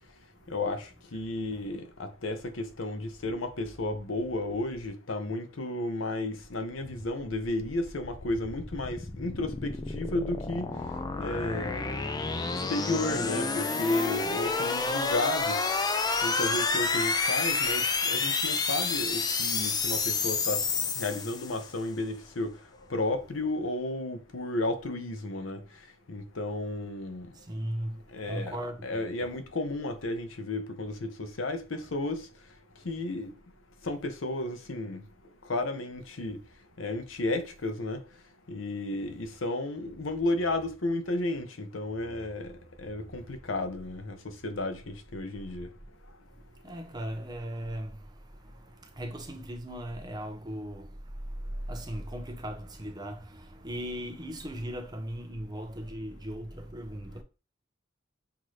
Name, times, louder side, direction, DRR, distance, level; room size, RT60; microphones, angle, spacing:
voice 1, 0.5-10.7 11.2-12.0 12.5-15.6 16.2-20.6 21.0-22.5 22.9-25.6 26.1-27.3 28.1-32.3 32.8-33.3 33.8-35.1 35.5-36.4 36.8-38.0 38.5-45.7, left 2 dB, 80° left, 0.7 m, -33 dB
sound 1, 7.7-21.7, left 4 dB, 20° left, 0.3 m, -30 dB
voice 2, 27.3-29.3 46.6-57.2, equal, 20° right, 0.6 m, -38 dB
5.9 x 2.6 x 3.1 m
head